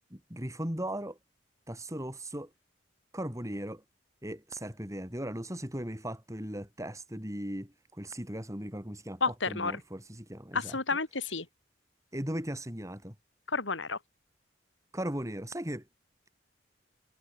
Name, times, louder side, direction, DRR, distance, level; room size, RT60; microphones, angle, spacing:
voice 1, 0.1-1.2 1.7-2.5 3.1-3.8 4.2-9.2 9.5-10.8 12.1-13.2 14.9-15.9, right 1 dB, 15° right, 7.0 m, -37 dB
voice 2, 9.2-9.8 10.5-11.5 13.5-14.0, left 4 dB, 85° left, 3.8 m, -31 dB
head